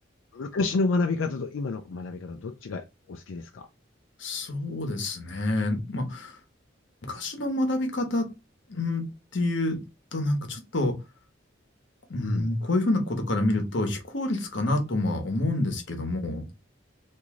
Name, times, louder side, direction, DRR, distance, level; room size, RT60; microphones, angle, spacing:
voice 1, 0.3-3.7 12.2-12.5, left 3 dB, 90° left, 0.4 m, -29 dB
voice 2, 4.2-6.4 7.1-8.3 8.7-9.0 9.3-9.8 10.1-11.0 12.1-16.4, left 2 dB, 65° left, 1.0 m, -27 dB
3.0 x 2.6 x 3.6 m
head